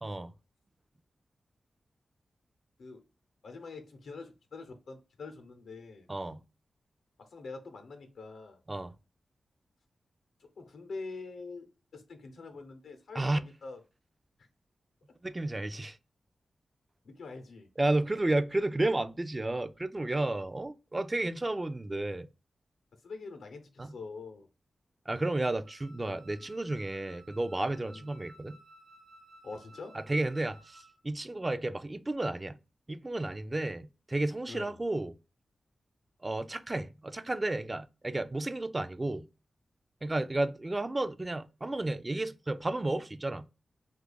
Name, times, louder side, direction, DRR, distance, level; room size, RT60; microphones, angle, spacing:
voice 1, 0.0-0.3 6.1-6.4 8.7-8.9 13.1-13.4 15.2-16.0 17.8-22.3 23.8-23.9 25.1-28.6 29.9-32.6 32.9-35.1 36.2-39.3 40.0-43.5, right 2 dB, 30° right, 0.3 m, -32 dB
voice 2, 3.4-6.1 7.2-8.6 10.4-13.8 17.0-17.7 23.0-24.5 27.9-28.2 29.4-30.0 34.5-34.8, left 3 dB, 85° left, 0.7 m, -45 dB
Wind instrument woodwind instrument, 25.6-31.0, right 1 dB, 75° right, 0.5 m, -57 dB
2.8 x 2.3 x 3.8 m
cardioid pair, 50°, 0 cm